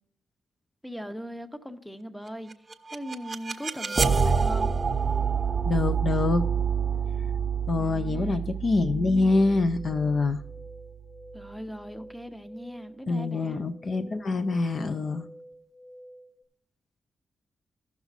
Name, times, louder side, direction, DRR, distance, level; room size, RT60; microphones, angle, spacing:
voice 1, 0.8-2.5 2.9-4.7 7.8-8.4 11.3-13.6, equal, 5° left, 0.8 m, -39 dB
sound 1, 2.5-11.4, right 6 dB, 30° right, 0.6 m, -28 dB
voice 2, 5.7-6.4 7.7-10.4 13.1-15.3, left 3 dB, 45° left, 0.5 m, -25 dB
sound 2, 9.3-16.4, equal, 25° left, 1.2 m, -49 dB
15.0 x 6.0 x 4.1 m
wide cardioid pair, 115°, 0 cm